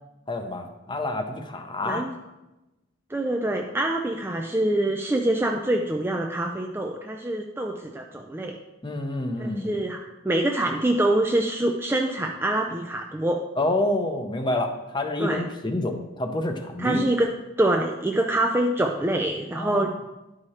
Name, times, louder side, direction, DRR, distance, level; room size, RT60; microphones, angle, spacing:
voice 1, 0.3-2.1 8.8-9.7 13.6-17.0 19.6-19.9, left 1 dB, 20° left, 5 dB, 0.7 m, -28 dB
voice 2, 3.1-8.6 9.4-13.4 15.2-15.4 16.8-17.3 17.6-19.9, right 1 dB, 10° right, 2 dB, 0.3 m, -25 dB
11.0 x 4.8 x 4.2 m, 1.0 s
head